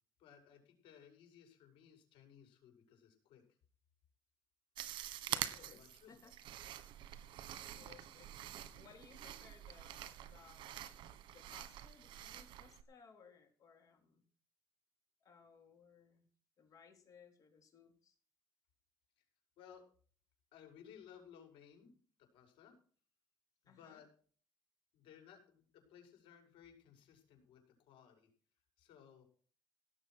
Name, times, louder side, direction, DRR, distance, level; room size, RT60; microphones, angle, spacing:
voice 1, 0.2-3.4 5.6-6.1 7.7-7.8 19.2-19.3 19.6-19.8 20.5-21.9 22.2-22.7 23.6-24.1 24.9-28.3 28.8-29.2, left 8 dB, 90° left, 3 dB, 6.3 m, -60 dB
sound 1, 4.8-12.8, right 12 dB, 70° right, 1.6 m, -46 dB
voice 2, 5.3-6.3 7.7-8.4 8.8-10.9 11.3-14.2 15.2-16.2 16.6-18.2 23.7-24.1, left 6 dB, 45° left, 5 dB, 3.9 m, -62 dB
17.5 x 7.8 x 6.2 m, 0.44 s
cardioid pair, 145°, 8 cm